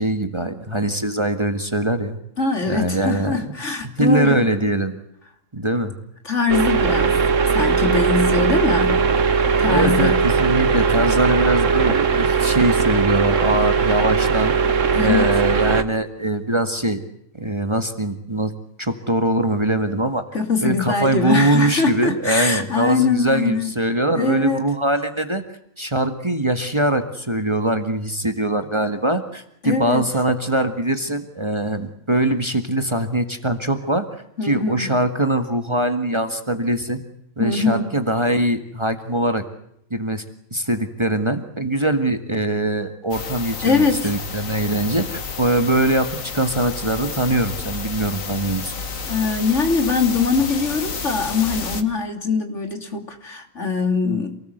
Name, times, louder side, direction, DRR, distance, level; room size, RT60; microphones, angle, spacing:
voice 1, 0.0-2.2 2.7-3.4 3.8-5.0 5.5-5.9 9.7-14.5 15.0-17.0 17.4-18.5 18.8-20.2 20.6-25.4 25.8-34.1 34.4-37.0 37.4-39.4 39.9-40.2 40.5-48.7, right 1 dB, 20° right, 8 dB, 1.9 m, -22 dB
voice 2, 2.4-4.4 6.2-7.2 7.5-9.1 9.6-10.2 14.9-15.3 20.3-23.7 24.1-24.6 29.6-30.0 34.4-34.9 37.4-37.9 43.6-44.1 49.0-54.4, left 4 dB, 60° left, 6 dB, 3.4 m, -22 dB
sound 1, 6.5-15.8, right 5 dB, 70° right, 1.7 m, -19 dB
sound 2, 43.1-51.8, left 4 dB, 80° left, 2.1 m, -31 dB
28.0 x 19.0 x 8.1 m, 0.74 s
omnidirectional pair, 1.4 m